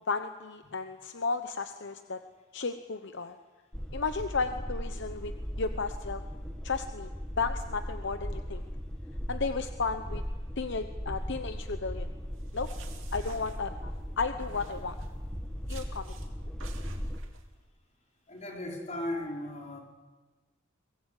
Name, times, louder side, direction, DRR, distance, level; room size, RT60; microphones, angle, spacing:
voice 1, 0.1-2.2 2.5-3.4 3.9-5.3 5.6-6.2 6.6-7.1 7.4-8.6 9.3-10.2 10.6-12.1 12.5-12.7 13.1-15.0 15.7-16.1, left 4 dB, 65° left, 8 dB, 1.0 m, -33 dB
sound 1, 3.7-17.2, equal, 5° left, 1.5 m, -38 dB
sound 2, 12.3-14.0 14.4-15.2 15.7-16.3 16.6-17.4, right 5 dB, 75° right, 3.0 m, -52 dB
voice 2, 18.3-19.8, left 1 dB, 35° left, 0 dB, 4.9 m, -36 dB
23.5 x 20.0 x 8.4 m, 1.2 s
head